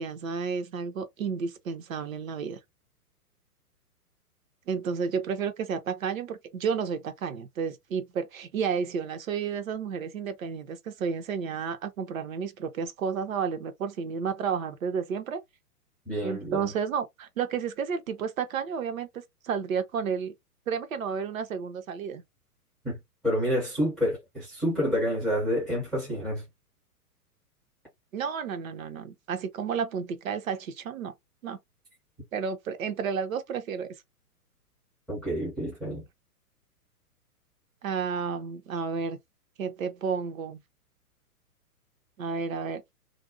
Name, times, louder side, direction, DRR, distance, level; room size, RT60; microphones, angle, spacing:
voice 1, 0.0-2.6 4.7-15.4 16.2-19.1 19.4-20.3 20.7-22.2 28.1-31.1 31.4-31.6 32.3-33.9 37.8-39.2 39.6-40.6 42.2-42.8, right 6 dB, 60° right, 0.6 m, -31 dB
voice 2, 16.1-16.7 22.8-23.0 23.2-26.4 35.1-36.0, equal, ahead, 0.4 m, -28 dB
2.5 x 2.0 x 2.5 m
figure-of-eight pair, 115°, 46 cm